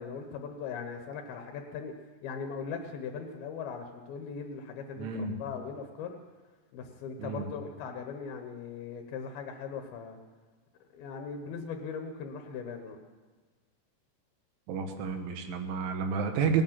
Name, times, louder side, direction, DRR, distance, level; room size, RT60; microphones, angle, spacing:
voice 1, 0.0-1.9 2.2-6.2 6.7-10.2 10.9-13.0, left 6 dB, 75° left, 5 dB, 2.4 m, -39 dB
voice 2, 5.0-5.4 7.2-7.5 14.7-16.6, right 6 dB, 85° right, 5 dB, 3.7 m, -30 dB
18.5 x 9.4 x 7.3 m, 1.4 s
omnidirectional pair, 5.4 m